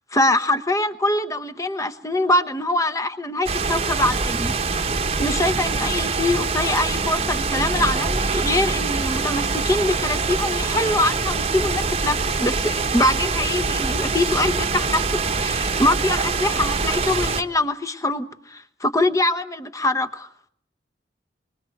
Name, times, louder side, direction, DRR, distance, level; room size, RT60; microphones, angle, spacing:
voice 1, 0.1-4.6 5.2-20.3, left 1 dB, 20° left, 12 dB, 1.1 m, -23 dB
sound 1, 3.4-17.4, right 4 dB, 35° right, 1.1 m, -24 dB
24.0 x 22.0 x 7.9 m, 0.63 s
head